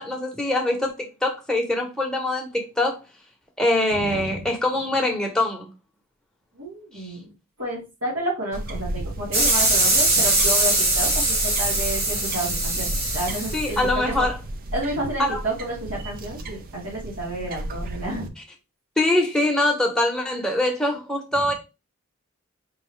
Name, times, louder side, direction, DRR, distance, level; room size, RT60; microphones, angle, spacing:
voice 1, 0.0-3.0 3.6-5.7 6.9-7.1 13.5-14.4 15.2-15.4 19.0-21.5, left 1 dB, 5° left, 0.8 m, -23 dB
voice 2, 3.9-4.5 6.5-7.3 7.6-13.8 14.7-18.3 21.3-21.5, right 1 dB, 85° right, 2.2 m, -31 dB
sound 1, 8.5-18.3, right 1 dB, 40° right, 0.5 m, -34 dB
sound 2, 9.3-14.3, right 2 dB, 65° right, 2.3 m, -22 dB
4.5 x 2.7 x 3.2 m
head